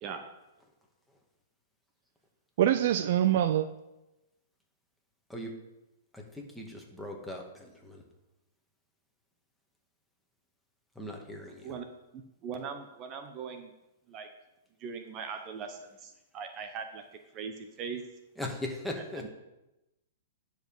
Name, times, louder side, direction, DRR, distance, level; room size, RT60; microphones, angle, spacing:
voice 1, 2.6-3.7, right 11 dB, 60° right, 11 dB, 0.5 m, -24 dB
voice 2, 6.1-8.0 11.0-11.7 18.4-19.3, left 1 dB, ahead, -1 dB, 1.8 m, -39 dB
voice 3, 11.4-11.8 12.1-13.7 14.1-14.3 14.8-17.0 17.3-18.1 19.2-19.3, right 6 dB, 35° right, 6 dB, 0.9 m, -40 dB
10.5 x 4.9 x 5.5 m, 0.97 s
hypercardioid pair, 125°, 0 cm